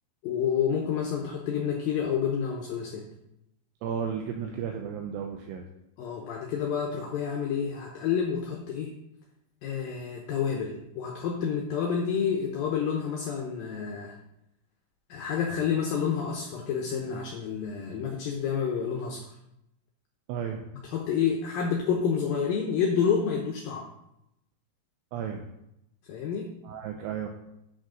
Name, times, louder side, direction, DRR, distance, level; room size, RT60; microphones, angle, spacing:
voice 1, 0.2-3.0 6.0-8.9 9.6-14.1 15.1-19.3 20.9-23.9 26.1-26.5, left 7 dB, 75° left, 0 dB, 2.2 m, -29 dB
voice 2, 3.8-5.7 20.3-20.6 25.1-25.4 26.6-27.3, right 7 dB, 80° right, 3 dB, 2.7 m, -33 dB
8.4 x 6.3 x 5.1 m, 0.84 s
omnidirectional pair, 5.1 m